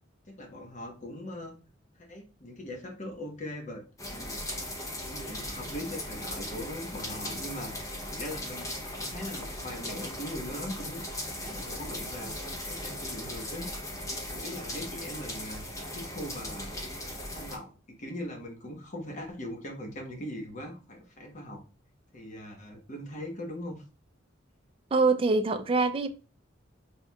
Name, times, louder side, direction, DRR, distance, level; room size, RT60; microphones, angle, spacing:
voice 1, 0.3-1.6 2.0-3.8 4.1-4.4 5.0-8.7 9.0-11.0 11.4-13.7 14.3-16.7 17.3-21.6 22.1-23.8, left 1 dB, 40° left, 1.0 m, -40 dB
sound 1, 4.0-17.6, left 1 dB, 15° left, 0.7 m, -38 dB
voice 2, 24.9-26.1, right 3 dB, 30° right, 0.4 m, -24 dB
4.3 x 3.5 x 2.3 m
head